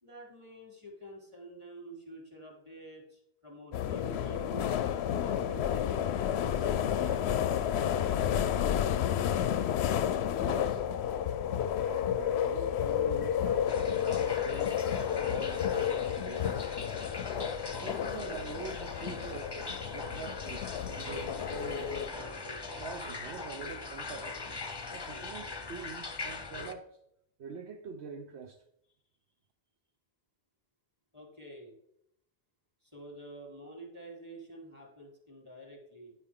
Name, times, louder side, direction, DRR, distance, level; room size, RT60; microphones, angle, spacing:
voice 1, 0.0-7.2 31.1-31.7 32.8-36.2, right 1 dB, 25° right, 3.6 m, -48 dB
sound 1, 3.7-22.1, left 9 dB, 70° left, 0.8 m, -31 dB
voice 2, 10.4-10.9 11.8-16.8 17.8-19.6 19.9-22.2 22.8-24.4 24.9-27.0 27.4-28.6, right 6 dB, 70° right, 1.0 m, -45 dB
sound 2, 13.7-26.7, left 3 dB, 25° left, 0.8 m, -41 dB
10.5 x 8.5 x 3.7 m
omnidirectional pair, 1.2 m